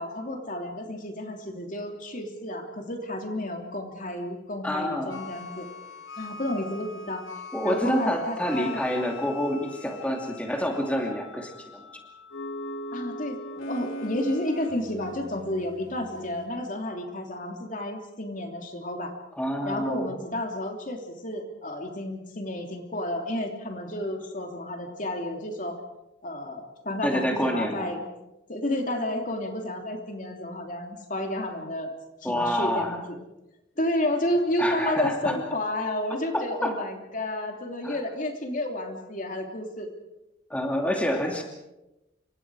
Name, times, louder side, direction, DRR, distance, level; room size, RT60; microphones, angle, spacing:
voice 1, 0.0-5.7 6.2-7.2 7.6-8.8 12.9-13.4 13.7-19.1 19.6-25.8 26.2-28.1 28.5-31.9 32.2-33.2 33.8-39.9, left 1 dB, 40° left, 3 dB, 3.0 m, -31 dB
voice 2, 4.6-5.2 7.5-11.8 19.4-20.1 27.0-27.9 32.2-33.0 34.6-35.4 36.3-36.8 37.8-38.0 40.5-41.4, equal, 5° left, 1 dB, 2.6 m, -27 dB
sound 1, 5.1-16.5, left 1 dB, 90° left, 2.7 m, -41 dB
28.5 x 25.5 x 4.9 m, 0.95 s
head